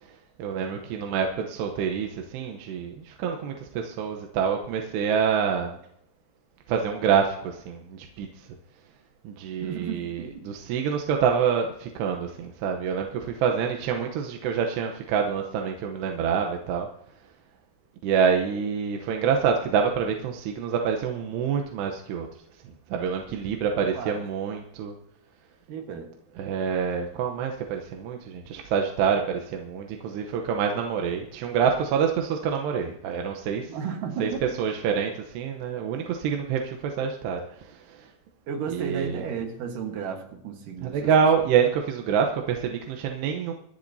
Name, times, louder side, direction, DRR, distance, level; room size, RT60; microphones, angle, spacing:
voice 1, 0.0-5.8 6.7-8.5 9.2-16.9 18.0-22.3 22.6-24.9 26.4-33.8 34.2-38.1 38.7-39.2 40.8-43.5, right 7 dB, 80° right, 2 dB, 3.0 m, -27 dB
voice 2, 9.6-10.5 23.8-24.2 25.7-26.1 33.7-34.4 38.5-41.1, right 6 dB, 60° right, 4 dB, 2.6 m, -33 dB
25.0 x 10.5 x 2.7 m, 0.74 s
omnidirectional pair, 4.9 m